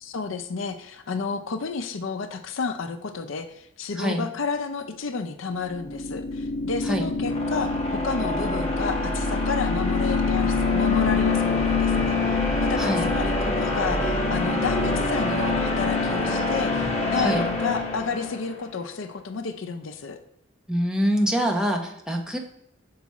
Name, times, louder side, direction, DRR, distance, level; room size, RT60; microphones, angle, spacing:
voice 1, 0.0-20.2, left 4 dB, 75° left, 8 dB, 0.5 m, -31 dB
voice 2, 4.0-4.3 6.9-7.1 12.8-13.1 17.1-17.4 20.7-22.4, equal, 5° right, 1 dB, 0.8 m, -25 dB
sound 1, 5.6-18.6, left 3 dB, 30° left, 1.0 m, -25 dB
6.0 x 4.7 x 4.1 m, 0.75 s
head